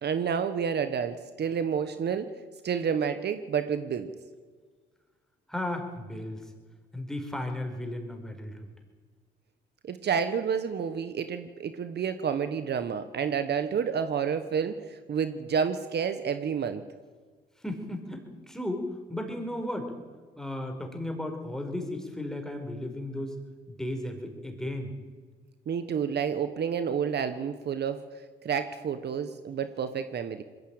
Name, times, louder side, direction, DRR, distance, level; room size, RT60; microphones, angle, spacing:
voice 1, 0.0-2.3 2.6-4.1 9.8-16.8 25.7-28.0 28.4-30.4, right 7 dB, 55° right, 10 dB, 1.3 m, -29 dB
voice 2, 5.5-6.5 6.9-8.5 17.6-19.9 20.4-23.4 23.7-24.9, left 1 dB, ahead, 4 dB, 4.8 m, -35 dB
21.0 x 15.0 x 9.0 m, 1.5 s
cardioid pair, 90°, 20 cm